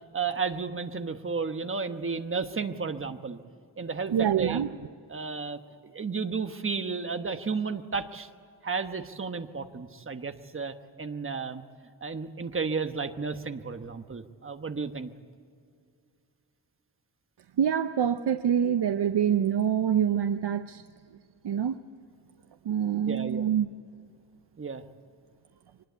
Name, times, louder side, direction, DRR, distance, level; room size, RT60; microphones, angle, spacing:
voice 1, 0.1-3.4 3.8-4.7 5.1-8.3 8.6-11.6 12.0-15.1 23.1-23.4 24.6-24.8, right 5 dB, 30° right, 8 dB, 1.1 m, -33 dB
voice 2, 4.1-4.7 17.6-20.8 21.4-21.8 22.6-23.7, right 9 dB, 75° right, 9 dB, 0.8 m, -25 dB
24.0 x 20.0 x 8.1 m, 2.3 s
wide cardioid pair, 150°, 42 cm